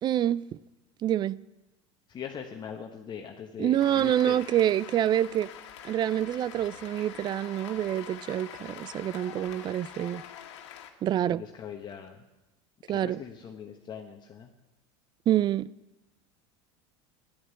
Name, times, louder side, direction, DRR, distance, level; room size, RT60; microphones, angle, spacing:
voice 1, 0.0-0.4 1.0-1.4 3.6-5.5 5.8-10.2 11.0-11.4 12.9-13.2 15.3-15.7, right 11 dB, 30° right, 0.4 m, -26 dB
voice 2, 2.1-4.5 11.3-12.2 12.9-14.5, left 7 dB, 30° left, 1.2 m, -41 dB
Cheering / Applause, 3.8-10.9, left 9 dB, 85° left, 1.7 m, -45 dB
11.0 x 10.5 x 8.2 m
supercardioid pair, 120°, 15 cm